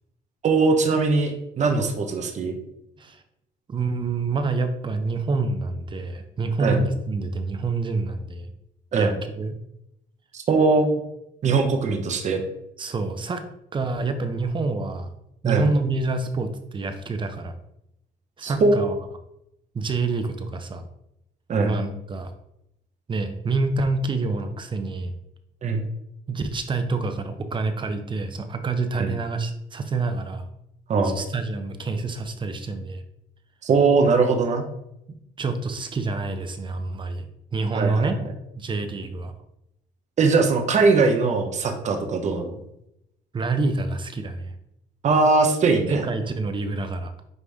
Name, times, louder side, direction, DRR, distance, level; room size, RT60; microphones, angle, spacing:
voice 1, 0.4-2.6 6.6-6.8 8.9-9.1 10.3-11.0 11.4-12.4 15.4-15.7 18.4-18.9 21.5-21.8 25.6-25.8 29.0-29.1 30.9-31.2 33.6-34.6 37.7-38.1 40.2-42.6 45.0-46.0, right 4 dB, 45° right, 4 dB, 1.1 m, -21 dB
voice 2, 3.7-8.5 8.9-9.5 12.8-13.4 13.7-15.1 15.4-17.5 18.4-18.9 19.7-20.8 21.6-22.3 23.1-25.1 26.3-30.5 31.0-33.0 35.4-38.2 38.6-39.3 43.3-44.5 45.9-47.1, right 3 dB, 30° right, 8 dB, 0.8 m, -27 dB
9.5 x 3.2 x 3.6 m, 0.82 s
cardioid pair, 110°, 17 cm